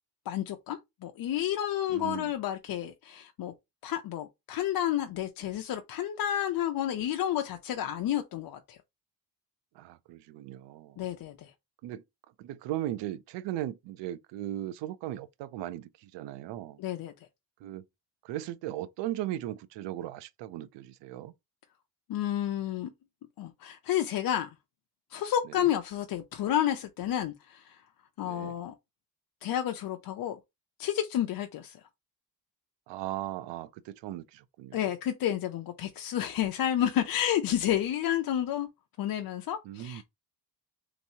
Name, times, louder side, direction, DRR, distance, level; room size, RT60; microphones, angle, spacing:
voice 1, 0.3-3.5 3.8-8.8 11.0-11.5 16.8-17.1 22.1-22.9 23.4-24.5 25.1-27.8 28.2-28.7 29.4-30.4 30.8-31.8 34.7-38.7 39.0-40.0, left 11 dB, 55° left, 0.6 m, -30 dB
voice 2, 1.9-2.3 9.8-11.0 11.8-12.0 12.4-16.8 17.6-17.8 18.2-21.3 25.5-25.7 28.2-28.5 32.9-34.9 39.6-40.0, right 13 dB, 85° right, 0.5 m, -37 dB
3.2 x 2.9 x 2.7 m
cardioid pair, 95°, 42 cm